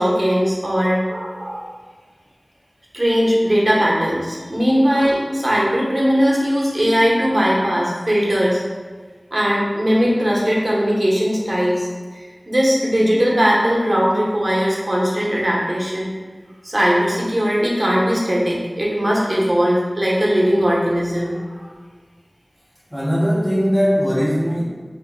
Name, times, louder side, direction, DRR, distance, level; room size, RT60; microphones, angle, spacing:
voice 1, 0.0-1.7 2.9-8.6 9.3-11.9 12.1-16.1 16.6-21.6, equal, 50° right, -4 dB, 1.0 m, -19 dB
voice 2, 22.9-24.6, equal, ahead, -5 dB, 0.5 m, -19 dB
3.2 x 2.8 x 4.4 m, 1.4 s
wide cardioid pair, 50°, 0 cm